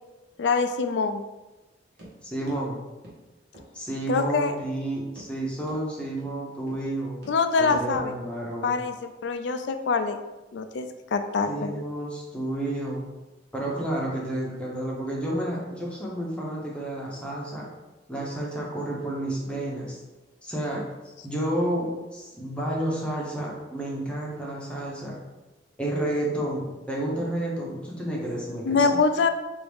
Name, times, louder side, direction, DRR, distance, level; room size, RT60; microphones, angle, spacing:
voice 1, 0.4-1.2 4.1-4.5 7.3-8.1 8.6-10.2 10.5-11.7 28.6-29.3, left 4 dB, 70° left, 8 dB, 0.4 m, -24 dB
sound 1, 2.0-2.1 2.5-2.6 3.0-3.2 3.5-3.7 4.0-4.1 4.6-4.7 5.1-5.3 5.7-5.8 6.2-6.3 6.7-6.8 7.2-7.4 7.7-8.1, right 1 dB, 65° right, 1.3 m, -44 dB
voice 2, 2.2-2.8 3.7-7.2 7.6-8.8 11.5-13.0 13.5-17.7 18.1-20.0 20.4-20.8 21.2-25.2 25.8-29.0, right 1 dB, 5° left, -4 dB, 0.8 m, -30 dB
4.7 x 2.6 x 3.4 m, 1.1 s
head